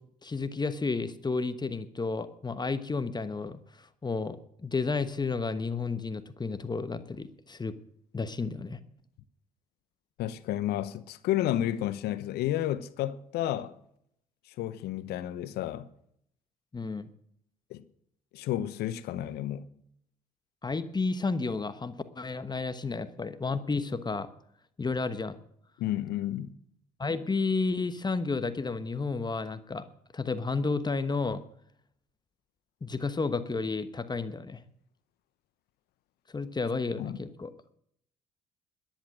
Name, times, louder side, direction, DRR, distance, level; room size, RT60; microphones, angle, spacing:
voice 1, 0.2-7.7 8.1-8.8 16.7-17.1 20.6-24.3 24.8-25.4 27.0-29.8 30.1-31.4 32.8-34.6 36.3-37.5, left 4 dB, 25° left, 1.2 m, -32 dB
voice 2, 10.2-13.8 14.5-15.9 17.7-17.8 18.3-19.7 25.8-26.5 37.0-37.2, left 12 dB, 70° left, 0.9 m, -31 dB
14.0 x 10.5 x 6.3 m
hypercardioid pair, 55°, 17 cm